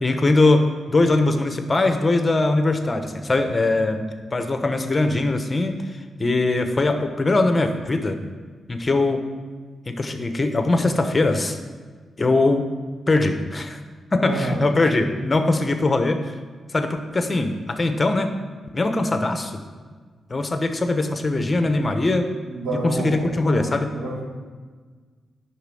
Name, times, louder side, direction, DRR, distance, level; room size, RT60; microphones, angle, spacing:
voice 1, 0.0-4.0 4.3-8.2 8.7-9.2 9.9-11.6 12.2-12.7 13.1-13.8 14.1-16.2 16.7-18.3 18.7-19.6 20.3-22.3 22.7-23.9, left 2 dB, 30° left, 6 dB, 1.1 m, -21 dB
voice 2, 14.2-14.6 22.5-23.7 23.9-24.2, right 2 dB, 75° right, -5 dB, 4.1 m, -28 dB
10.0 x 6.2 x 7.7 m, 1.5 s
cardioid pair, 70°, 0 cm